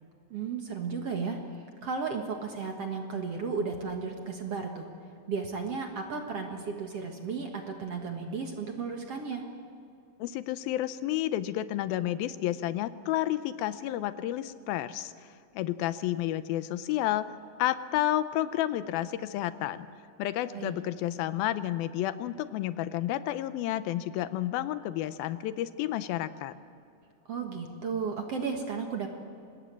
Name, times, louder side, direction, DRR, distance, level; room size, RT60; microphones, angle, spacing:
voice 1, 0.3-1.4 1.8-4.9 5.3-9.5 20.5-20.8 27.3-29.1, right 5 dB, 50° right, 3 dB, 2.1 m, -34 dB
voice 2, 10.2-15.1 15.5-17.3 17.6-19.9 20.2-26.5, left 13 dB, 80° left, 13 dB, 2.5 m, -31 dB
26.0 x 20.0 x 7.5 m, 2.5 s
omnidirectional pair, 4.4 m